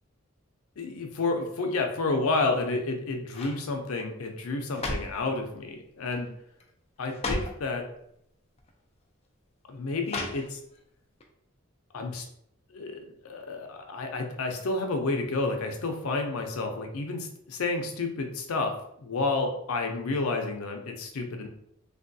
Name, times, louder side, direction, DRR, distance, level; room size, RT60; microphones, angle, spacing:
voice 1, 0.8-6.3 7.0-7.9 9.7-10.6 11.9-12.3 12.7-21.5, left 3 dB, 85° left, 3 dB, 0.5 m, -30 dB
sound 1, 2.5-2.9 3.3-3.6 4.4-5.3 6.1-6.3 6.6-6.7 7.1-7.6 8.6-8.7 10.0-10.8 11.2-11.3, left 2 dB, 30° left, 0.3 m, -35 dB
3.3 x 2.2 x 2.6 m, 0.74 s
head